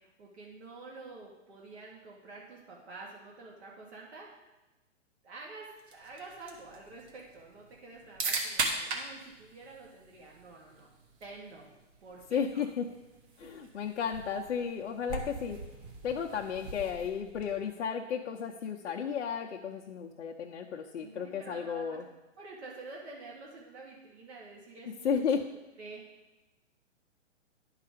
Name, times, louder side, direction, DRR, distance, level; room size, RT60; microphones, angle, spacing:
voice 1, 0.0-4.3 5.2-10.9 11.2-11.7 12.0-12.6 16.1-16.5 21.0-22.0 22.4-25.2 25.8-26.0, right 3 dB, 60° right, -3 dB, 2.1 m, -48 dB
sound 1, 5.8-17.7, right 3 dB, 30° right, 1.3 m, -40 dB
voice 2, 12.3-12.9 13.4-15.6 16.0-22.1 24.9-25.4, left 7 dB, 70° left, -2 dB, 0.8 m, -33 dB
10.5 x 4.8 x 5.0 m, 1.1 s
hypercardioid pair, 135°, 37 cm